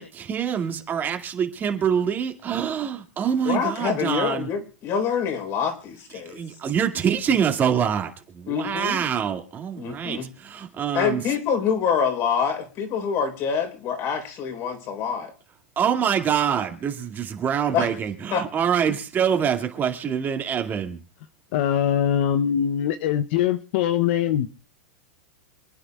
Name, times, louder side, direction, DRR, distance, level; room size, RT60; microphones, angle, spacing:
voice 1, 0.0-4.5 6.3-11.2 15.8-21.0, right 8 dB, 30° right, 2.1 m, -25 dB
voice 2, 3.4-6.4 7.3-7.4 8.5-9.1 9.8-10.3 10.9-15.3 17.7-17.9 18.3-18.5 18.9-19.0, left 7 dB, 45° left, 4.0 m, -26 dB
voice 3, 21.5-24.5, left 9 dB, 60° left, 0.7 m, -22 dB
27.5 x 9.9 x 2.4 m
hypercardioid pair, 110°, 7 cm